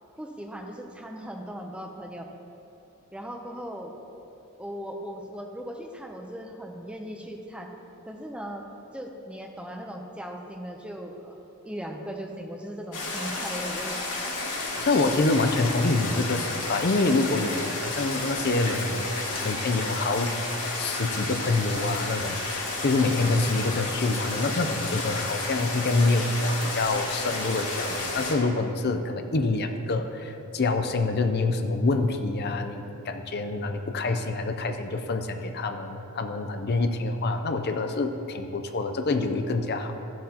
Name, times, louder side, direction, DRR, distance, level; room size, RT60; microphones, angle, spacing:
voice 1, 0.2-2.3 3.1-3.9 4.6-7.7 8.1-8.7 8.9-11.4 11.6-14.0, equal, 5° right, 2 dB, 0.6 m, -38 dB
sound 1, 12.9-28.3, left 2 dB, 85° left, 2.2 m, -32 dB
voice 2, 14.8-20.4 20.8-40.0, left 3 dB, 45° left, 6 dB, 0.5 m, -26 dB
15.5 x 7.5 x 2.9 m, 2.8 s
head